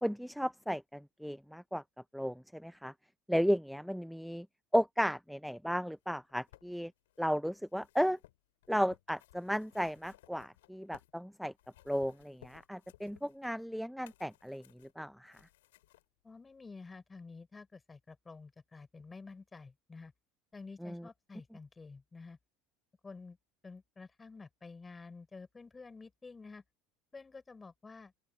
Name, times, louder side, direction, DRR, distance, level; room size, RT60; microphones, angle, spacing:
voice 1, 0.0-1.8 2.1-2.9 3.3-4.5 4.7-6.9 7.2-8.2 8.7-11.5 11.9-14.6 15.0-15.4 20.8-21.0, equal, ahead, 0.4 m, -34 dB
sound 1, 6.0-11.2 11.5-16.1 16.9-17.0, left 16 dB, 90° left, 6.9 m, -62 dB
voice 2, 16.2-20.1 20.5-22.4 23.0-23.4 23.6-26.6 27.1-28.1, left 4 dB, 20° left, 6.2 m, -50 dB
open air
supercardioid pair, 100°, 0 cm